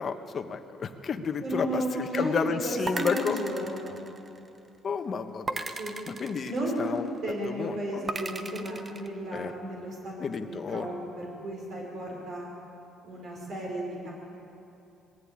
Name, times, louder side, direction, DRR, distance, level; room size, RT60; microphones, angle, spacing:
voice 1, 0.0-3.4 4.8-5.7 6.1-6.5 6.8-7.1 7.4-8.1 9.3-9.5 10.2-11.0, left 5 dB, 40° left, 7 dB, 1.3 m, -31 dB
voice 2, 1.4-4.1 5.8-6.0 6.5-12.5 13.0-14.1, right 1 dB, 55° right, -2 dB, 5.1 m, -34 dB
sound 1, 2.9-4.6 5.5-7.1 8.1-9.1, right 3 dB, 25° right, 1.0 m, -36 dB
21.0 x 15.5 x 8.9 m, 2.8 s
cardioid pair, 110°, 0 cm